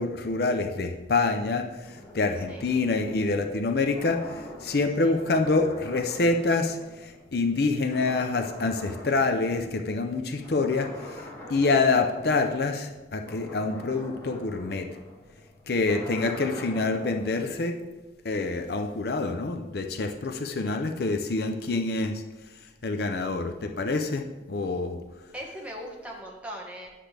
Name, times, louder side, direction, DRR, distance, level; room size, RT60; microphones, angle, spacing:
voice 1, 0.0-11.2 11.5-14.9 15.7-17.8 18.2-22.1 22.8-25.0, left 3 dB, 60° left, 6 dB, 0.6 m, -26 dB
sound 1, 1.6-7.6 7.9-9.9 10.3-17.5, left 1 dB, 15° left, 1.7 m, -45 dB
voice 2, 10.5-11.1 25.3-26.9, equal, 10° right, -3 dB, 1.4 m, -40 dB
10.0 x 7.4 x 3.3 m, 1.1 s
head